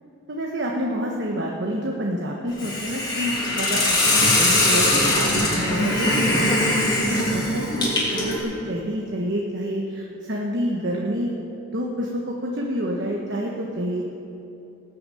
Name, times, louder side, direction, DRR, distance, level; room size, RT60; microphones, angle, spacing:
voice 1, 0.3-11.3 11.7-14.1, equal, 55° right, -2 dB, 1.3 m, -28 dB
Hiss, 2.6-8.4, left 1 dB, 20° left, 2.8 m, -21 dB
19.0 x 6.9 x 7.7 m, 3.0 s
head